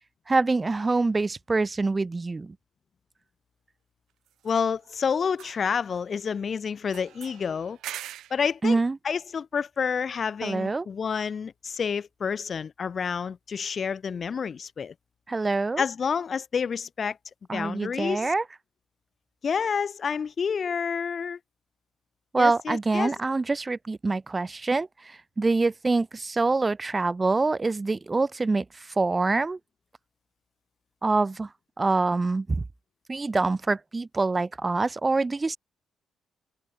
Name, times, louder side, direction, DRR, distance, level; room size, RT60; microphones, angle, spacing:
voice 1, 0.3-2.5 8.6-9.0 10.4-10.9 15.3-15.8 17.5-18.4 22.3-29.6 31.0-31.5 31.8-32.6 33.1-35.6, right 3 dB, 25° right, 0.4 m, -25 dB
sound 1, 0.9-1.1 4.3-5.0 5.3-6.4 6.9-8.5, right 12 dB, 80° right, 2.2 m, -43 dB
voice 2, 4.4-7.8 8.3-8.8 9.0-14.9 15.8-17.2 17.5-18.3 19.4-21.4 22.4-23.1, left 6 dB, 45° left, 0.4 m, -29 dB
cardioid pair, 90°, 0 cm